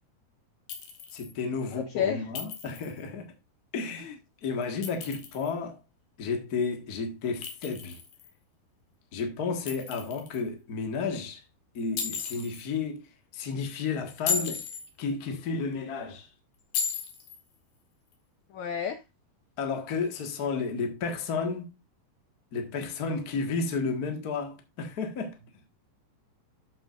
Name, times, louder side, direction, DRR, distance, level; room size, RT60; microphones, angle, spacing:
Chink clink, 0.7-1.3 2.4-3.0 4.6-5.5 7.4-8.3 9.7-10.4 12.0-12.7 14.1-14.9 16.7-17.4, left 6 dB, 70° left, 3.6 m, -35 dB
voice 1, 1.1-3.3 3.7-5.8 6.2-8.0 9.1-11.4 11.7-14.7 15.0-16.3 19.6-21.7 22.5-25.4, left 4 dB, 50° left, 1.1 m, -32 dB
voice 2, 1.7-2.3 4.0-4.1 18.5-19.0, left 8 dB, 85° left, 1.6 m, -31 dB
13.5 x 6.1 x 2.5 m
omnidirectional pair, 4.6 m